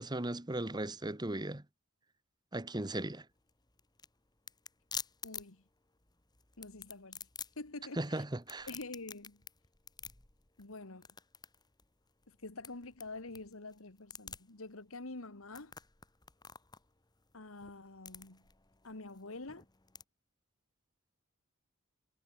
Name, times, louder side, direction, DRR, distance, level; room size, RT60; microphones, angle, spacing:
voice 1, 0.0-1.6 2.5-3.2 8.0-8.7, right 1 dB, 20° right, 1.3 m, -37 dB
sound 1, 3.3-20.0, left 6 dB, 20° left, 1.6 m, -50 dB
voice 2, 5.2-5.6 6.6-7.3 7.6-8.2 8.7-9.4 10.6-11.1 12.3-15.7 17.3-18.5 18.8-19.7, left 2 dB, 80° left, 2.0 m, -47 dB
head